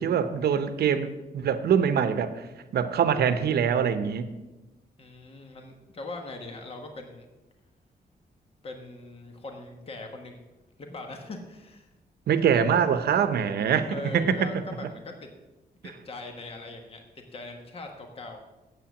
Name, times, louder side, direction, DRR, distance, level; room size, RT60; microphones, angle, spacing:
voice 1, 0.0-2.3 2.7-4.2 12.3-14.3, right 7 dB, 85° right, 11 dB, 0.9 m, -24 dB
voice 2, 5.0-7.3 8.6-10.4 10.8-11.9 13.9-15.3 15.8-18.4, left 2 dB, 35° left, 3 dB, 1.3 m, -41 dB
8.9 x 7.8 x 7.1 m, 1.1 s
wide cardioid pair, 150°, 16 cm